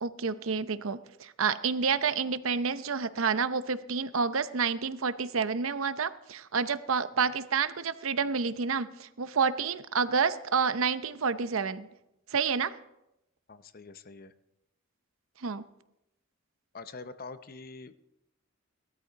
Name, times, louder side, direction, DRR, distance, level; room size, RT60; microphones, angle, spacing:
voice 1, 0.0-11.9 12.3-12.7 15.4-15.7, right 5 dB, 75° right, 13 dB, 0.7 m, -29 dB
voice 2, 13.5-14.3 16.7-18.0, left 3 dB, 45° left, 12 dB, 0.7 m, -45 dB
18.0 x 13.5 x 4.0 m, 0.88 s
head